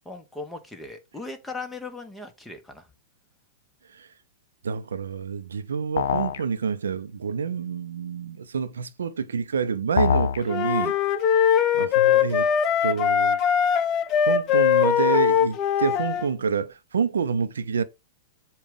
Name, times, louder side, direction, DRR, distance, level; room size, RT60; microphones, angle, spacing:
voice 1, 0.0-2.9, left 3 dB, 5° left, 1.2 m, -38 dB
voice 2, 4.6-10.9 11.3-11.4 11.7-12.5 12.8-13.4 14.3-17.8, right 6 dB, 85° right, 0.7 m, -27 dB
sound 1, 6.0-6.4 10.0-10.4, left 7 dB, 75° left, 0.6 m, -23 dB
sound 2, 10.5-16.3, left 9 dB, 35° left, 0.6 m, -21 dB
7.3 x 2.5 x 5.2 m
hypercardioid pair, 120°, 0 cm